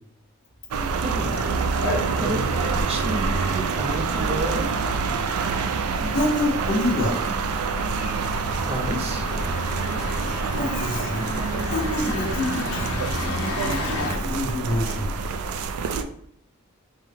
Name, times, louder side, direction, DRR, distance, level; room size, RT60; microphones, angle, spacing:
sound 1, 0.7-16.0, right 5 dB, 90° right, 0.4 m, -26 dB
voice 1, 1.0-1.4 2.2-4.8 8.6-9.3, right 1 dB, 30° right, 3 dB, 0.5 m, -30 dB
sound 2, 1.3-14.2, left 2 dB, 85° left, 0.7 m, -34 dB
voice 2, 6.0-7.2 10.5-11.3 11.7-15.1, left 1 dB, 60° left, -6 dB, 0.9 m, -27 dB
5.3 x 2.2 x 3.4 m, 0.68 s
head